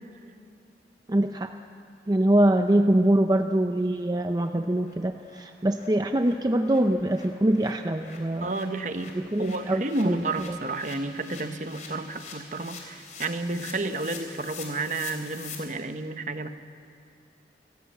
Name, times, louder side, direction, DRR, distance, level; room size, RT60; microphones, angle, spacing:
voice 1, 1.1-1.5 2.1-8.5 9.1-10.6, right 1 dB, 20° right, 6 dB, 0.5 m, -24 dB
sound 1, 2.6-2.7 3.0-3.1 3.5-3.6 3.9-4.0 4.4-4.5 4.8-4.9 5.3-5.4 5.7-15.6, left 5 dB, 45° left, 3.7 m, -45 dB
voice 2, 8.4-16.5, right 2 dB, 45° right, 8 dB, 1.0 m, -31 dB
25.0 x 17.0 x 8.6 m, 2.5 s
head